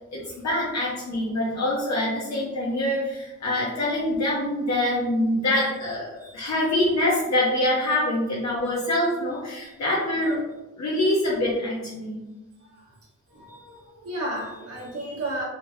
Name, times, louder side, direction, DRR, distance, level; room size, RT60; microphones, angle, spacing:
voice 1, 0.1-10.4 10.8-12.2, left 1 dB, 60° left, -5 dB, 1.0 m, -25 dB
voice 2, 13.3-13.7 14.0-15.4, right 1 dB, 50° right, -5 dB, 1.1 m, -32 dB
3.7 x 3.0 x 2.7 m, 1.1 s
cardioid pair, 60°, 31 cm